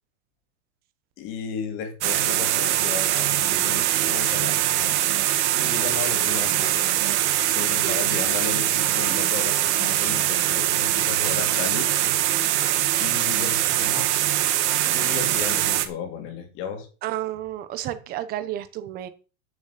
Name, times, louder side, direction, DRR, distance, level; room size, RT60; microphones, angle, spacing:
voice 1, 1.2-5.0 5.6-7.1 7.4-11.9 13.0-14.6 14.9-16.9, left 6 dB, 30° left, 2.8 m, -34 dB
sound 1, 2.0-15.9, right 13 dB, 55° right, 2.1 m, -22 dB
voice 2, 7.8-8.1 17.0-19.1, right 12 dB, 20° right, 1.1 m, -31 dB
10.5 x 6.2 x 8.4 m
supercardioid pair, 175°, 41 cm